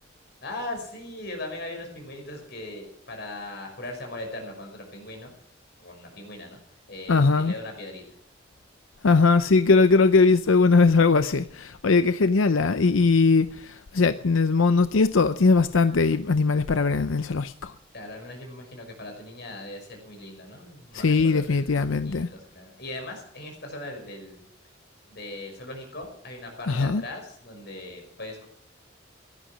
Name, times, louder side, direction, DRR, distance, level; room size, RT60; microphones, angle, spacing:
voice 1, 0.4-5.3 5.8-6.6 6.9-8.1 17.9-24.5 25.1-28.5, left 2 dB, 50° left, 5.8 m, -39 dB
voice 2, 7.1-7.5 9.0-17.7 20.9-22.3 26.7-27.0, left 4 dB, 80° left, 0.7 m, -20 dB
17.0 x 11.5 x 6.2 m
head